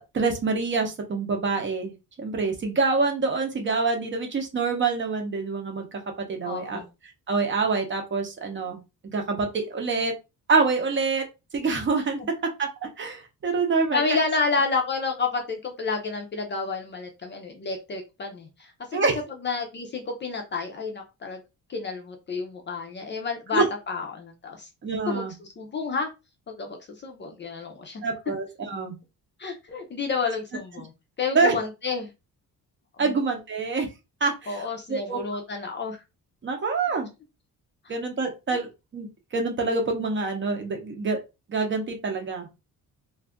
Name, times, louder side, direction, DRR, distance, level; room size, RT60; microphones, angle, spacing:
voice 1, 0.1-5.9 6.3-6.8 7.3-10.1 10.5-11.2 11.5-12.2 12.6-12.7 13.0-14.0 18.9-19.2 23.5-23.7 24.8-25.3 28.0-28.9 31.3-31.5 33.0-33.9 34.2-35.2 36.4-37.1 37.9-39.1 39.3-41.2 41.5-42.5, right 4 dB, 35° right, 3 dB, 0.7 m, -26 dB
voice 2, 6.4-6.9 12.2-12.3 13.9-19.1 19.4-21.4 21.7-24.7 25.0-26.1 26.5-28.0 29.4-30.9 31.2-32.1 33.0-33.1 34.5-36.0 37.8-37.9 38.5-38.6, left 4 dB, 30° left, 4 dB, 0.5 m, -30 dB
2.6 x 2.4 x 3.4 m, 0.26 s
cardioid pair, 165°, 36 cm